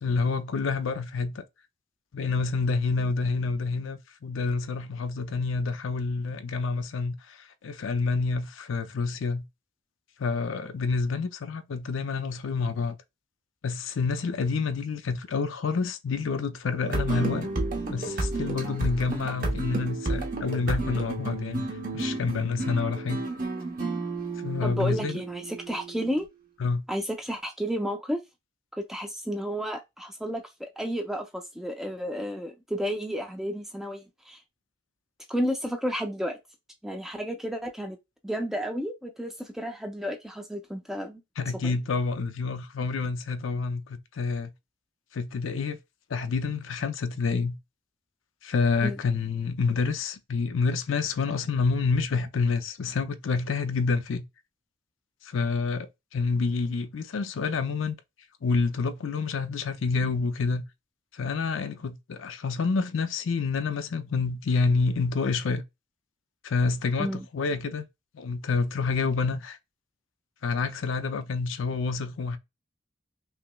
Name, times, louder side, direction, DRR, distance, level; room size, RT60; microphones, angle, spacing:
voice 1, 0.0-1.4 2.1-7.4 7.6-9.4 10.2-13.0 13.6-17.5 17.9-21.7 21.9-23.2 24.4-25.2 26.6-26.8 41.4-44.5 45.1-45.8 46.1-47.6 48.4-54.2 55.2-58.0 58.4-60.6 61.1-65.6 66.4-67.8 68.1-69.6 70.4-72.4, left 4 dB, 80° left, 0.5 m, -28 dB
sound 1, 16.8-26.2, right 2 dB, 45° right, 0.9 m, -31 dB
voice 2, 24.6-26.3 26.9-28.2 28.7-34.4 35.3-36.4 36.8-38.0 38.2-41.2 41.6-41.8 48.8-49.0 67.0-67.3, equal, ahead, 0.4 m, -32 dB
5.6 x 2.1 x 2.2 m
head